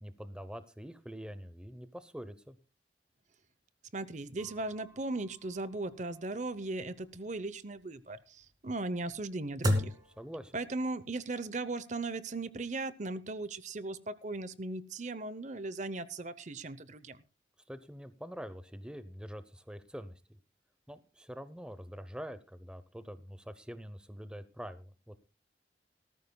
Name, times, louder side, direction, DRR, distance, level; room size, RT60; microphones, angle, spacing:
voice 1, 0.0-2.6 10.2-10.6 17.7-20.1 20.9-25.2, equal, 5° right, 12 dB, 0.7 m, -45 dB
voice 2, 3.9-9.9 10.5-17.2, right 2 dB, 40° right, 15 dB, 0.8 m, -37 dB
sound 1, 4.4-11.0, left 1 dB, 20° right, 2.2 m, -38 dB
18.5 x 14.0 x 2.3 m, 0.32 s
head